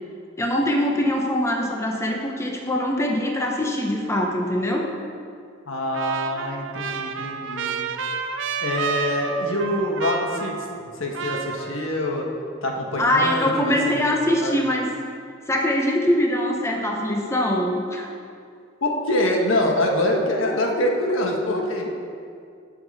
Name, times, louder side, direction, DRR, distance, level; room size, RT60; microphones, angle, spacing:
voice 1, 0.4-4.9 13.0-14.9 15.5-18.1, left 1 dB, 15° left, 0 dB, 0.9 m, -23 dB
voice 2, 5.7-7.8 8.6-12.3 12.6-14.0 14.4-14.6 18.8-21.9, left 1 dB, 85° left, 0 dB, 1.4 m, -25 dB
Trumpet, 5.9-10.9 11.1-12.2, right 6 dB, 65° right, 0.6 m, -30 dB
16.0 x 5.8 x 4.2 m, 2.3 s
head